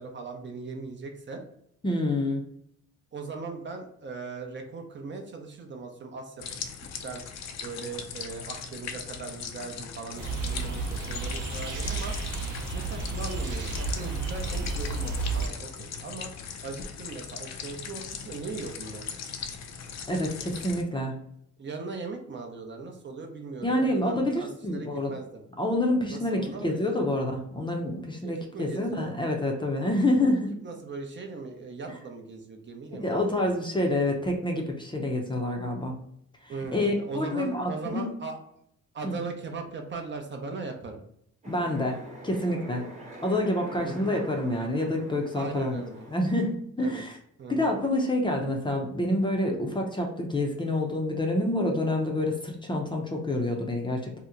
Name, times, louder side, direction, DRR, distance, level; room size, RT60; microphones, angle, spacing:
voice 1, 0.0-1.4 3.1-6.4 7.0-7.2 7.6-12.1 12.7-16.3 16.6-19.1 21.6-25.4 26.1-26.9 28.2-29.1 30.6-33.5 36.5-38.4 38.9-41.0 43.8-44.2 45.3-46.1 46.8-47.0 47.4-47.7, right 4 dB, 40° right, 3 dB, 0.6 m, -39 dB
voice 2, 1.8-2.4 20.1-21.2 23.6-25.1 25.6-30.5 33.0-36.0 36.4-38.1 39.0-39.1 41.4-42.0 42.2-42.8 43.2-45.8 46.1-47.1 47.5-54.2, left 1 dB, 15° left, 1 dB, 0.6 m, -27 dB
sound 1, 6.4-20.8, left 6 dB, 60° left, 0.5 m, -39 dB
sound 2, 10.2-15.5, right 3 dB, 75° right, 0.7 m, -32 dB
sound 3, 41.4-46.5, right 1 dB, 25° right, 1.0 m, -45 dB
2.8 x 2.1 x 3.6 m, 0.70 s
cardioid pair, 90°, 30 cm